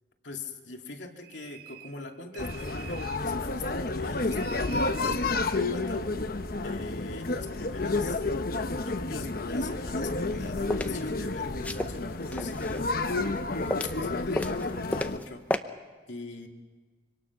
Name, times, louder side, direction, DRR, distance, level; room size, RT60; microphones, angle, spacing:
voice 1, 0.2-6.1 6.6-8.2 8.9-15.5 16.1-16.5, left 3 dB, 75° left, 2 dB, 2.6 m, -42 dB
sound 1, 1.2-2.0 2.3-3.3 4.3-5.3, right 11 dB, 50° right, 1.9 m, -47 dB
sound 2, 2.4-15.2, left 3 dB, 55° left, 1.0 m, -30 dB
sound 3, 10.2-10.9 11.6-12.9 13.2-14.1 14.3-15.2 15.5-15.6, left 1 dB, 10° left, 0.8 m, -32 dB
26.0 x 25.5 x 6.0 m, 1.4 s
head